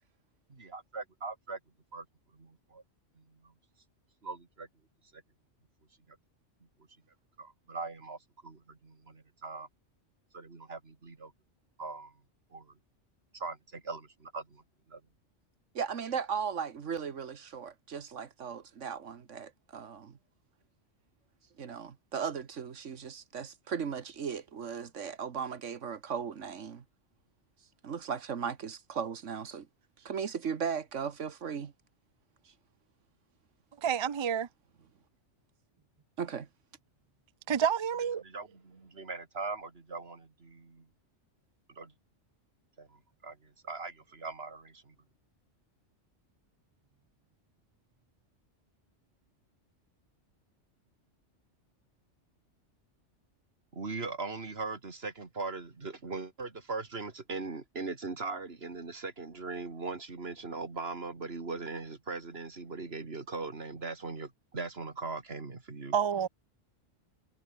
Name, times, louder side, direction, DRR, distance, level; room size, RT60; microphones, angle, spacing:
voice 1, 0.5-1.6 1.9-2.1 2.3-2.8 3.2-3.5 4.2-4.7 5.1-5.2 6.1-6.2 7.4-9.7 10.3-11.3 11.8-12.1 12.5-12.7 13.3-14.6 14.9-15.0 38.2-40.9 41.7-41.9 42.8-44.9 53.7-66.0, right 3 dB, 55° right, 2.6 m, -40 dB
voice 2, 15.7-20.2 21.6-26.8 27.8-29.7 30.0-31.7 36.2-36.5, right 7 dB, 85° right, 1.6 m, -37 dB
voice 3, 33.8-34.5 37.5-38.2 65.9-66.3, right 8 dB, 40° right, 0.4 m, -29 dB
omnidirectional pair, 1.2 m